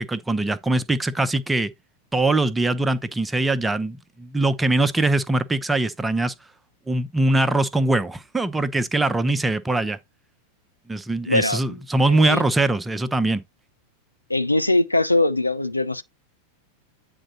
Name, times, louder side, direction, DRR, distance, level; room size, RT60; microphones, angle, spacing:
voice 1, 0.0-1.7 2.1-6.3 6.9-10.0 10.9-13.4, right 2 dB, 10° right, 0.6 m, -22 dB
voice 2, 11.3-11.8 12.1-12.4 14.3-16.0, left 2 dB, 85° left, 0.5 m, -21 dB
8.9 x 3.8 x 4.2 m
figure-of-eight pair, 90°, 0 cm